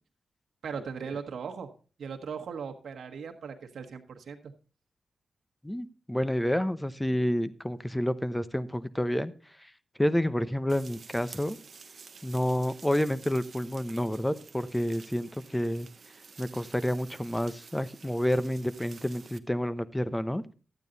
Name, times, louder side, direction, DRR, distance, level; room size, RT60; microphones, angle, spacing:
voice 1, 0.6-1.7 2.0-4.5, right 6 dB, 75° right, 3 dB, 1.5 m, -38 dB
voice 2, 5.6-9.3 10.0-11.6 12.2-15.9 16.4-20.4, equal, 10° left, 14 dB, 0.8 m, -29 dB
sound 1, 10.7-19.4, right 5 dB, 55° right, 0.9 m, -51 dB
12.0 x 9.1 x 4.0 m, 0.36 s
cardioid pair, 60°, 0 cm